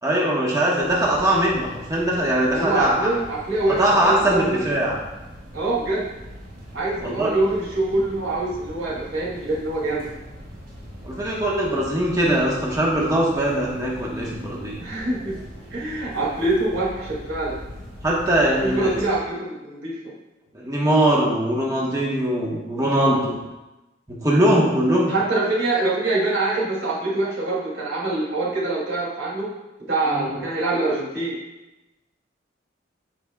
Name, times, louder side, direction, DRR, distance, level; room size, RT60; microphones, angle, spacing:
voice 1, 0.0-3.1 3.8-5.0 7.0-7.3 11.0-14.8 18.0-18.9 20.5-23.4 24.1-25.1 30.1-30.3, right 1 dB, 15° right, -4 dB, 1.2 m, -21 dB
sound 1, 0.8-19.1, equal, 55° right, 2.6 m, -41 dB
voice 2, 2.5-4.6 5.5-6.1 6.7-10.1 14.8-15.4 15.7-17.5 18.6-20.1 22.9-23.3 25.1-29.5 29.9-31.4, right 2 dB, 90° right, -5 dB, 2.8 m, -24 dB
15.0 x 5.0 x 2.4 m, 1.0 s
head